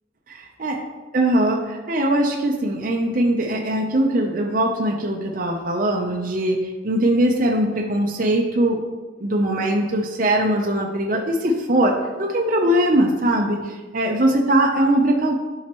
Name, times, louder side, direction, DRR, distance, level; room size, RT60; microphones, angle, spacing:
voice 1, 0.3-0.8 1.1-8.8 9.2-15.4, right 1 dB, 45° right, 1 dB, 0.6 m, -21 dB
10.5 x 5.6 x 3.0 m, 1.3 s
head